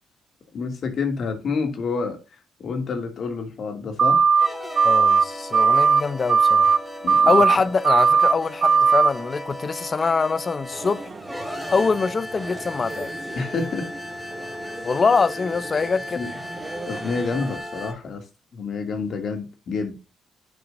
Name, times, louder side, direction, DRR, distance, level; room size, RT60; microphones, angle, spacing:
voice 1, 0.5-2.2 2.6-4.2 7.0-7.4 13.3-13.9 16.1-16.3 16.9-18.2 18.5-20.0, left 4 dB, 60° left, 2.6 m, -28 dB
sound 1, 4.0-4.5 4.7-5.2 5.5-6.0 6.3-6.8 7.1-7.6 7.8-8.3 8.6-9.1, right 5 dB, 50° right, 0.6 m, -17 dB
sound 2, 4.2-17.9, left 1 dB, 5° left, 3.5 m, -36 dB
voice 2, 4.8-6.8 7.2-11.0 11.7-13.1 14.8-16.3, left 4 dB, 35° left, 0.8 m, -23 dB
sound 3, 10.7-17.6, right 3 dB, 25° right, 1.7 m, -39 dB
10.5 x 7.3 x 2.7 m
cardioid pair, 90°, 0 cm